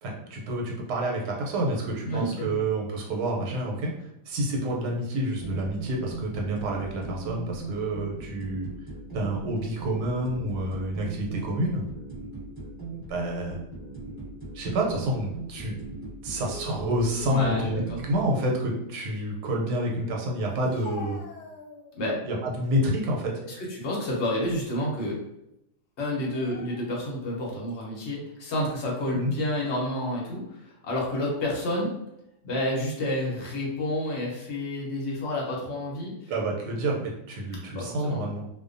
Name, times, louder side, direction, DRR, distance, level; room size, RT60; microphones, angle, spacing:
voice 1, 0.0-8.7 9.1-11.8 13.1-13.6 14.5-15.7 16.2-17.8 18.1-21.2 22.2-23.3 29.1-29.3 36.3-38.5, right 1 dB, 85° right, -1 dB, 1.2 m, -28 dB
voice 2, 2.0-2.6 17.3-18.0 22.0-22.2 23.4-25.2 26.0-31.9 32.4-36.3 37.7-38.3, left 1 dB, 55° left, -3 dB, 0.8 m, -30 dB
sound 1, 5.4-18.3, right 3 dB, 15° right, 0.9 m, -39 dB
Speech, 20.5-22.1 22.6-23.2 23.7-24.9 25.1-25.3 26.1-27.1 27.7-27.8 28.6-28.9 29.6-30.3 31.2-31.9, left 5 dB, 80° left, 1.2 m, -47 dB
2.7 x 2.1 x 2.5 m, 0.83 s
omnidirectional pair, 1.7 m